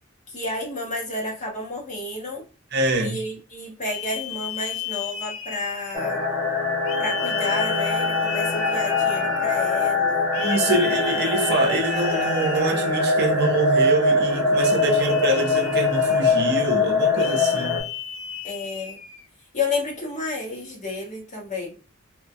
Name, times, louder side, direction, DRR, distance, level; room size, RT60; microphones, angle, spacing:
voice 1, 0.3-2.4 3.0-6.2 7.0-10.2 18.4-19.0 19.5-21.8, left 2 dB, 35° left, 1.0 m, -31 dB
voice 2, 2.7-3.2 10.3-17.8, right 2 dB, 55° right, 0.6 m, -25 dB
sound 1, 2.9-3.2 3.8-6.2 6.8-9.6 10.3-13.1 14.6-16.5 17.1-19.2, left 9 dB, 70° left, 0.7 m, -35 dB
sound 2, 5.9-17.8, left 3 dB, 5° right, 0.8 m, -22 dB
3.0 x 2.1 x 2.6 m
head